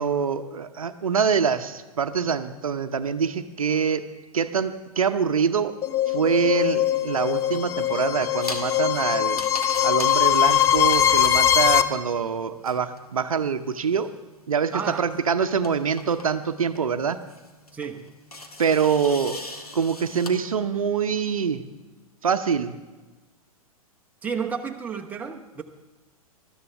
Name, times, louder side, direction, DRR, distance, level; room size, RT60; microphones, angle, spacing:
voice 1, 0.0-4.0 4.3-5.8 6.1-9.4 9.8-14.1 14.5-17.2 18.6-19.4 19.7-21.7 22.2-22.8, right 6 dB, 65° right, 10 dB, 0.8 m, -25 dB
sound 1, 5.8-11.8, left 11 dB, 15° left, 0.4 m, -21 dB
sound 2, 6.5-20.3, left 2 dB, 80° left, 1.7 m, -42 dB
voice 2, 14.7-15.1 17.7-18.1 24.2-25.6, right 6 dB, 10° right, 1 dB, 1.0 m, -31 dB
20.0 x 13.0 x 3.5 m, 1.2 s
figure-of-eight pair, 105°, 19 cm